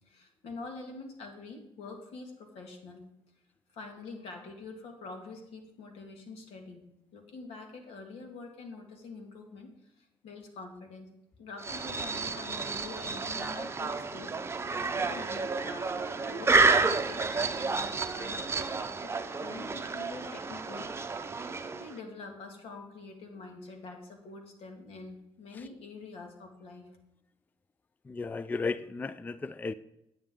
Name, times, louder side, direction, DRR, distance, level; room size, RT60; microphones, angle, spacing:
voice 1, 0.0-3.0 3.7-11.1 11.4-14.4 15.0-19.1 19.4-20.9 21.8-26.9, left 3 dB, 75° left, 4 dB, 2.0 m, -46 dB
sound 1, 11.6-22.0, right 4 dB, 25° right, 0.7 m, -30 dB
voice 2, 28.0-29.7, left 4 dB, 15° left, 16 dB, 0.3 m, -35 dB
9.3 x 9.2 x 3.7 m, 0.85 s
cardioid pair, 85°, 10 cm